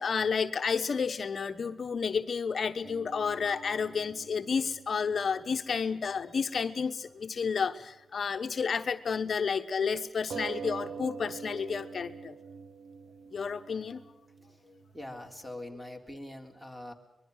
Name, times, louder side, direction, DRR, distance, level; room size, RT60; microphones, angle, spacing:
voice 1, 0.0-12.3 13.3-14.0, left 6 dB, 55° left, 8 dB, 1.0 m, -31 dB
sound 1, 2.8-6.7 7.0-7.1 10.3-15.5, right 6 dB, 80° right, 1.2 m, -45 dB
voice 2, 14.9-16.9, left 1 dB, 10° right, 4 dB, 3.7 m, -43 dB
24.0 x 21.5 x 6.4 m, 0.97 s
cardioid pair, 90°, 0 cm